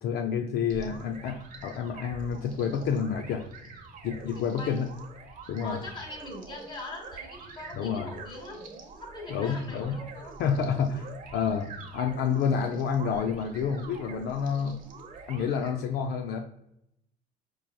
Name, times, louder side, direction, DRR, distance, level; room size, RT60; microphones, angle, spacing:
voice 1, 0.0-3.5 4.0-4.9 5.5-5.8 7.7-8.1 9.3-10.0 10.4-14.8 15.3-16.4, left 6 dB, 70° left, 4 dB, 0.4 m, -29 dB
sound 1, 0.7-15.7, right 4 dB, 50° right, 0.8 m, -46 dB
voice 2, 4.3-4.8 5.6-8.6 9.0-10.3, left 1 dB, 30° left, 1 dB, 1.3 m, -41 dB
4.5 x 3.0 x 2.2 m, 0.79 s
cardioid pair, 110°, 17 cm